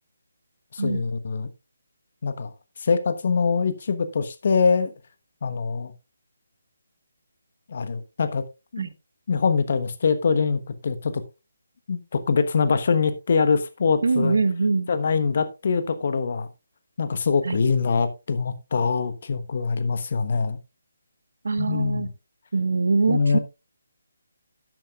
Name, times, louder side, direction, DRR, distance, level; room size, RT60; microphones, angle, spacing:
voice 1, 0.7-1.5 2.2-2.5 2.8-4.9 5.4-5.9 7.7-8.4 8.7-8.9 9.3-11.2 11.9-14.4 14.9-16.5 17.0-20.6 21.6-22.1 23.1-23.4, left 5 dB, 50° left, 1.1 m, -23 dB
voice 2, 14.0-14.9 17.4-17.6 21.4-22.1 22.5-23.4, right 4 dB, 65° right, 0.9 m, -23 dB
12.5 x 8.9 x 2.4 m
figure-of-eight pair, 150°, 0 cm